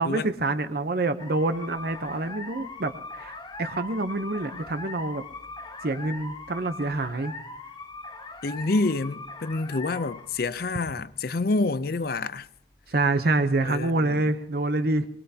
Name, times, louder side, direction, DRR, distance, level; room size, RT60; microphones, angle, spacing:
voice 1, 0.0-5.2 5.8-7.3 12.9-15.1, right 2 dB, 50° right, 0.7 m, -26 dB
sound 1, 1.2-13.4, left 2 dB, 25° left, 1.0 m, -41 dB
voice 2, 8.4-12.5 13.6-14.2, left 3 dB, 50° left, 0.5 m, -27 dB
23.0 x 20.5 x 2.8 m
head